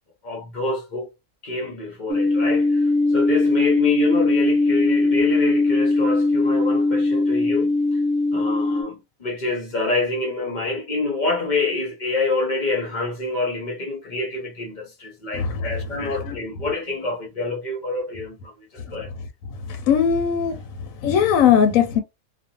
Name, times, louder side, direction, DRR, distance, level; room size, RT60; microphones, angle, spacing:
voice 1, 0.2-1.1 1.4-8.0 8.3-19.1, left 3 dB, 45° left, 0.6 m, -27 dB
sound 1, 2.1-8.8, left 2 dB, 70° right, 1.0 m, -20 dB
voice 2, 15.3-16.4 19.7-20.6 21.0-22.0, left 8 dB, 75° left, 0.9 m, -20 dB
2.5 x 2.3 x 2.8 m
omnidirectional pair, 1.5 m